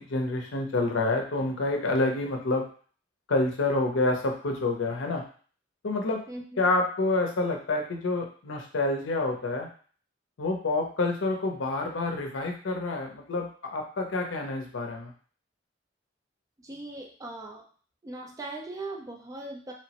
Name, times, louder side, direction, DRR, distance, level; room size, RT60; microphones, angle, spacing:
voice 1, 0.0-2.6 3.3-5.2 5.8-6.2 6.6-9.7 10.4-15.1, left 2 dB, 80° left, 2 dB, 0.6 m, -28 dB
voice 2, 6.3-6.6 16.6-17.6 18.0-19.7, right 2 dB, 20° right, 1 dB, 0.4 m, -39 dB
3.1 x 2.0 x 2.8 m, 0.43 s
head